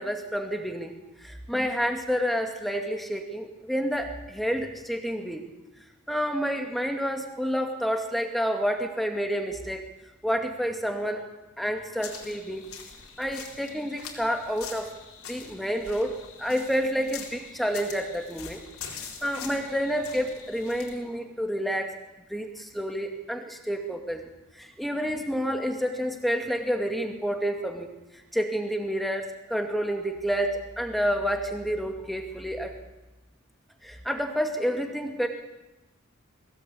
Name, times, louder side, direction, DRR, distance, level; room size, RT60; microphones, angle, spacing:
voice 1, 0.0-5.5 6.1-9.8 10.2-11.2 11.6-12.7 13.2-14.9 15.3-18.6 19.2-22.0 22.3-24.2 24.5-27.9 28.1-32.8 33.8-35.3, equal, ahead, 4 dB, 2.2 m, -29 dB
sound 1, 12.0-21.0, left 6 dB, 90° left, 4.3 m, -44 dB
22.0 x 17.5 x 8.7 m, 1.0 s
head